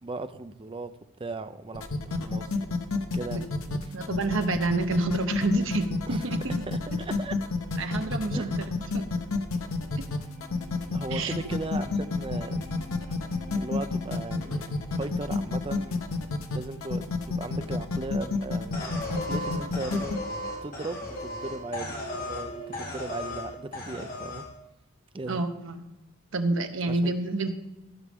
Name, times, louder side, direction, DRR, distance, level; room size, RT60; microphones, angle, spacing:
voice 1, 0.0-0.9 1.2-2.5 3.1-3.9 6.1-6.3 6.7-7.4 8.3-8.5 10.9-12.7 13.6-16.0 16.5-20.2 20.6-24.4 25.1-25.4 26.9-27.1, right 2 dB, 25° right, 10 dB, 0.4 m, -37 dB
sound 1, 1.7-20.2, left 4 dB, 75° left, 0.9 m, -30 dB
voice 2, 3.3-6.6 7.8-9.0 10.0-10.1 11.1-11.3 25.3-25.8 26.3-27.5, right 2 dB, 60° right, 7 dB, 0.9 m, -29 dB
sound 2, 4.2-23.6, equal, 60° left, 3.5 m, -51 dB
sound 3, 18.7-22.5 22.7-23.5 23.7-24.4, left 1 dB, 40° left, 2.4 m, -35 dB
15.5 x 6.2 x 3.5 m, 1.0 s
head